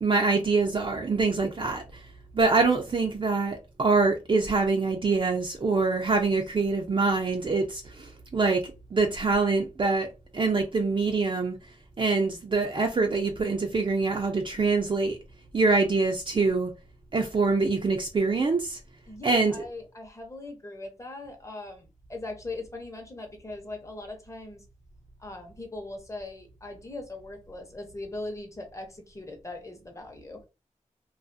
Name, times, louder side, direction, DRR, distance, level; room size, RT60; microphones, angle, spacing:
voice 1, 0.0-2.0 2.3-10.1 10.3-11.6 12.0-15.2 15.5-16.7 17.1-18.8 19.2-19.6, right 3 dB, 40° right, 0.4 m, -25 dB
voice 2, 19.1-24.6 25.2-30.4, left 2 dB, 20° left, 0.7 m, -40 dB
2.4 x 2.3 x 2.5 m
wide cardioid pair, 70°, 13 cm